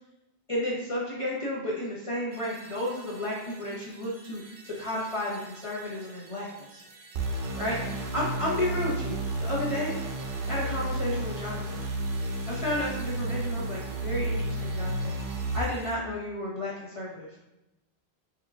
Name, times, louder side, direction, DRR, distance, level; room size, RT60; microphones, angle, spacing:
voice 1, 0.5-6.8 7.6-10.0 10.5-11.8 12.5-15.1 15.5-17.3, left 1 dB, 35° left, -6 dB, 0.7 m, -32 dB
sound 1, 2.3-15.9, right 2 dB, 85° right, 1.1 m, -51 dB
sound 2, 7.1-15.6, right 2 dB, 60° right, 0.7 m, -32 dB
4.7 x 2.3 x 3.4 m, 0.94 s
omnidirectional pair, 1.1 m